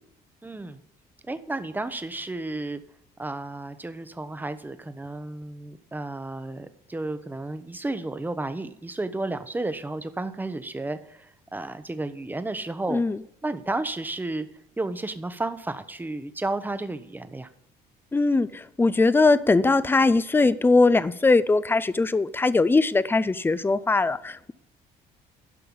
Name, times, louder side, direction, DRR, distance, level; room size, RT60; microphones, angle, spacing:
voice 1, 0.4-0.8 1.3-2.8 3.2-13.0 13.4-14.5 14.8-17.5, right 2 dB, 10° right, 0.9 m, -32 dB
voice 2, 18.1-24.5, left 3 dB, 15° left, 0.5 m, -21 dB
12.0 x 5.6 x 8.6 m
cardioid pair, 110°, 17 cm